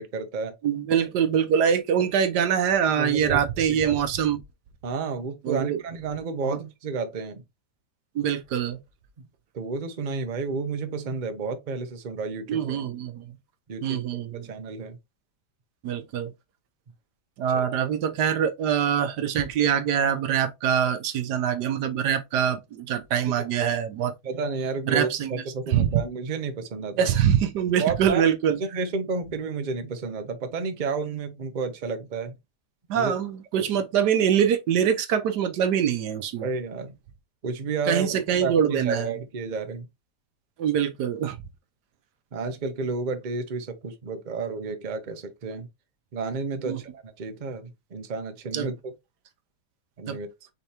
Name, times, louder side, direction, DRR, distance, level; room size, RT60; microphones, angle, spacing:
voice 1, 0.0-0.6 3.0-3.4 3.7-4.0 4.8-7.4 9.5-12.8 13.7-14.0 14.3-15.0 17.5-17.6 24.2-27.1 27.8-28.2 28.6-32.4 32.9-33.1 33.5-33.6 36.4-37.0 37.4-39.9 42.3-45.7 46.1-48.9 50.0-50.3, right 4 dB, 40° right, 0.7 m, -31 dB
voice 2, 0.6-4.4 5.4-5.8 6.4-6.6 8.1-8.8 12.5-13.2 13.8-14.5 15.8-16.3 17.4-24.1 24.9-25.3 25.7-26.0 27.0-28.6 32.9-36.5 37.9-39.1 40.6-41.4 46.6-46.8 48.5-48.7 50.1-50.2, right 8 dB, 80° right, 1.3 m, -24 dB
5.5 x 3.4 x 2.9 m
omnidirectional pair, 1.8 m